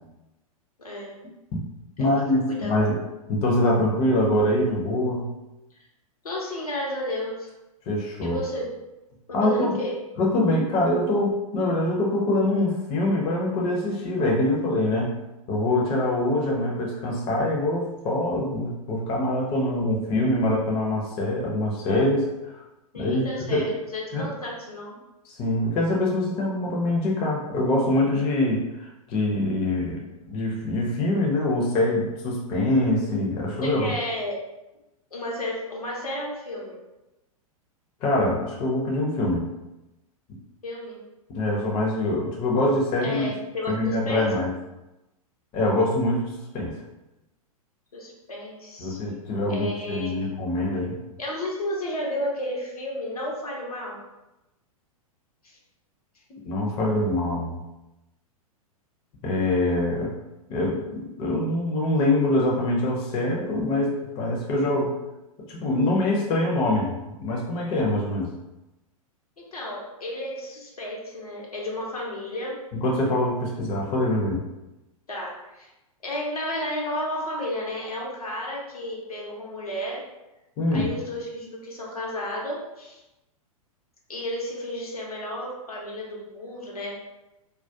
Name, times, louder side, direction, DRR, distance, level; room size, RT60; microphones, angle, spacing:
voice 1, 0.8-1.2 2.0-2.1 2.5-2.9 6.2-7.5 8.2-8.7 9.3-9.9 22.9-25.0 33.6-34.3 35.1-36.8 40.6-41.0 43.0-44.3 47.9-49.2 49.5-50.3 51.2-54.0 55.4-55.6 69.4-72.5 75.1-75.7 76.0-80.0 80.7-83.0 84.1-87.0, left 1 dB, 80° left, -3 dB, 0.7 m, -32 dB
voice 2, 2.0-3.0 3.3-5.3 7.9-8.4 9.3-9.8 10.2-15.1 15.5-22.3 23.0-23.7 24.1-24.3 25.2-33.8 38.0-39.4 41.3-43.3 43.7-44.5 45.5-46.7 48.8-51.0 56.3-57.6 59.2-60.1 60.5-64.9 65.5-68.3 72.7-74.4 80.6-80.9, left 1 dB, 30° left, -2 dB, 0.5 m, -24 dB
2.2 x 2.1 x 2.6 m, 0.98 s
figure-of-eight pair, 100°, 19 cm